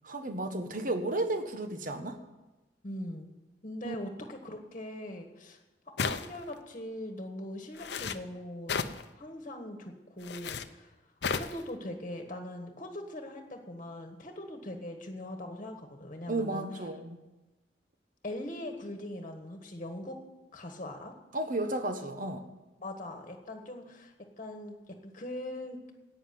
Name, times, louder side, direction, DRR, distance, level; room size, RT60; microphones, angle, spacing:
voice 1, 0.0-2.2 3.8-3.9 16.3-17.2 21.3-22.4, right 2 dB, 50° right, 7 dB, 1.3 m, -33 dB
voice 2, 2.8-3.3 3.6-5.6 6.0-8.8 9.1-10.9 11.3-16.8 18.2-20.2 20.5-21.1 22.8-25.8, left 1 dB, 40° left, 4 dB, 1.5 m, -41 dB
sound 1, 6.0-6.5 7.7-8.2 8.7-9.0 10.2-10.7 11.2-11.6, left 5 dB, 70° left, 0.7 m, -33 dB
11.0 x 9.0 x 9.5 m, 1.1 s
head